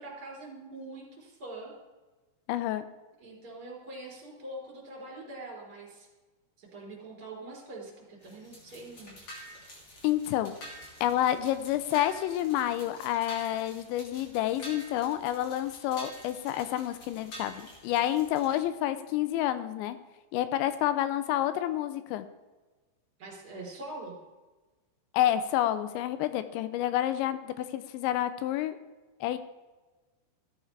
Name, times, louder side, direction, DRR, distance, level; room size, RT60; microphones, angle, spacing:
voice 1, 0.0-1.7 3.2-6.1 6.6-9.3 23.2-24.2, right 2 dB, 20° right, -3 dB, 3.7 m, -44 dB
voice 2, 2.5-2.8 10.0-10.6 11.0-20.0 20.3-22.3 25.1-28.8 29.2-29.4, left 12 dB, 85° left, 12 dB, 2.8 m, -29 dB
sound 1, 8.2-18.6, equal, 40° left, 2.9 m, -48 dB
15.0 x 9.6 x 3.3 m, 1.2 s
omnidirectional pair, 5.3 m